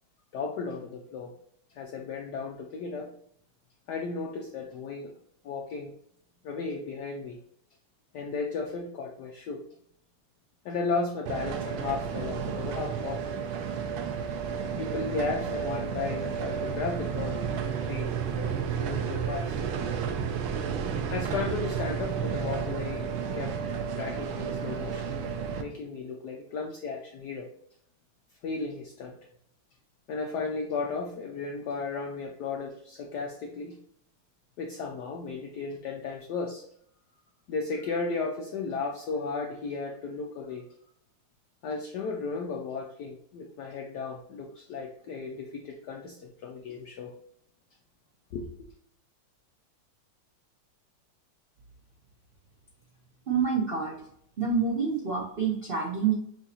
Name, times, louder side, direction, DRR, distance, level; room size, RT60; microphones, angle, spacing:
voice 1, 0.3-1.3 1.7-3.1 3.9-5.1 5.4-5.9 6.4-7.4 8.1-9.6 10.6-13.4 14.8-19.6 21.1-25.1 25.6-27.5 28.4-29.2 30.1-33.8 34.6-36.7 37.5-40.7 41.6-47.1 48.3-48.5, left 4 dB, 80° left, 1 dB, 0.9 m, -35 dB
sound 1, 11.3-25.6, right 7 dB, 75° right, 1.3 m, -32 dB
voice 2, 53.3-53.9 54.4-56.2, right 5 dB, 60° right, -4 dB, 0.6 m, -27 dB
6.1 x 2.7 x 2.9 m, 0.69 s
omnidirectional pair, 2.3 m